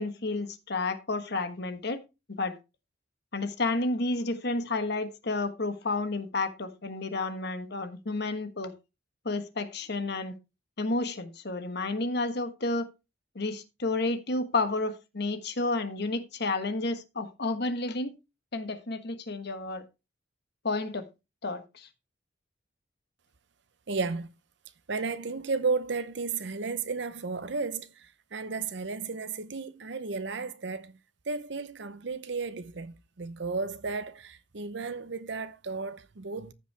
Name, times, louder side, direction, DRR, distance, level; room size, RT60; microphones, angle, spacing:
voice 1, 0.0-2.0 2.3-2.6 3.3-8.7 9.2-10.3 10.8-12.9 13.3-18.1 18.5-19.8 20.6-21.1 21.4-21.9, left 2 dB, 55° left, 1.3 m, -31 dB
voice 2, 23.9-24.3 24.9-31.0 31.3-36.5, right 4 dB, 60° right, 0.7 m, -33 dB
14.5 x 5.5 x 3.4 m
head